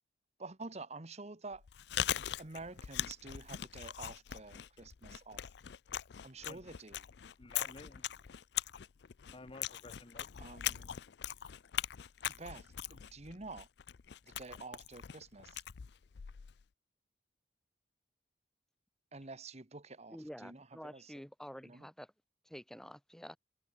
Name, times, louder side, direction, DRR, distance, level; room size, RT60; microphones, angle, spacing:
voice 1, 0.4-1.6 2.4-5.4 6.2-7.0 10.4-10.9 12.3-13.7 14.2-15.6 19.1-21.1 21.6-21.9, right 3 dB, 35° right, 1.4 m, -49 dB
Chewing mastication, 1.5-16.6, left 11 dB, 65° left, 0.5 m, -41 dB
voice 2, 6.4-6.8 7.4-8.3 9.3-10.4, left 2 dB, 30° left, 1.0 m, -53 dB
voice 3, 20.1-22.1 22.4-23.4, equal, 5° left, 1.5 m, -49 dB
head